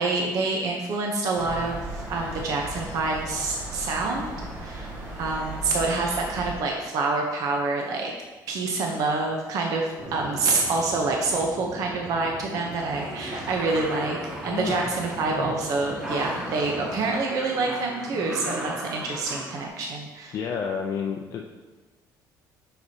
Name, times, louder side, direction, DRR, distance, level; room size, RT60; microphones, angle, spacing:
voice 1, 0.0-4.3 4.6-8.1 8.5-20.3, right 3 dB, 50° right, 1 dB, 0.7 m, -27 dB
sound 1, 1.3-6.5, right 1 dB, 30° right, 1.5 m, -36 dB
sound 2, 10.0-17.1, right 1 dB, 70° right, 2.1 m, -39 dB
sound 3, 12.5-19.7, equal, 10° right, 0.7 m, -38 dB
voice 2, 14.5-14.8 15.3-15.5 20.3-21.6, left 6 dB, 45° left, 2 dB, 0.4 m, -30 dB
7.9 x 6.0 x 2.8 m, 1.2 s
cardioid pair, 165°, 7 cm